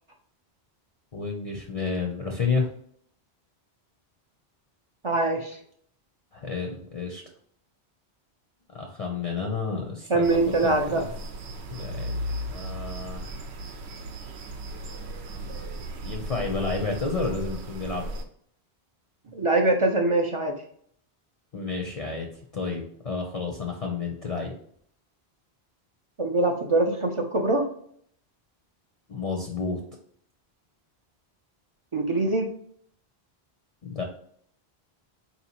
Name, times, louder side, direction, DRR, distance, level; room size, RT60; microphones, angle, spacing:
voice 1, 1.1-2.7 6.3-7.2 8.7-10.4 10.6-11.0 11.7-12.2 12.5-13.4 16.0-18.1 21.5-22.3 22.5-24.5 29.1-29.8 33.8-34.0, left 4 dB, 45° left, 1 dB, 0.5 m, -30 dB
voice 2, 5.0-5.6 10.1-11.0 19.3-20.5 26.2-27.7 31.9-32.5, right 2 dB, 45° right, 2 dB, 0.4 m, -23 dB
sound 1, 10.2-18.2, right 1 dB, 90° right, 0.9 m, -36 dB
4.4 x 2.8 x 2.8 m, 0.63 s
omnidirectional pair, 1.1 m